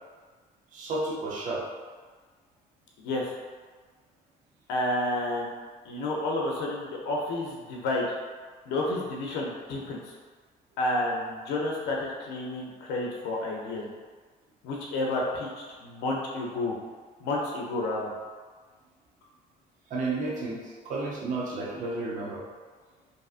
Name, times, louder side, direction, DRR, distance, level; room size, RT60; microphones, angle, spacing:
voice 1, 0.7-1.6 19.9-22.4, right 3 dB, 50° right, -4 dB, 0.5 m, -32 dB
voice 2, 4.7-5.5 5.9-8.2 8.7-10.0 10.8-13.8 14.6-16.8 17.2-18.1, left 2 dB, 85° left, -2 dB, 0.5 m, -30 dB
2.6 x 2.4 x 2.4 m, 1.5 s
cardioid pair, 110°, 17 cm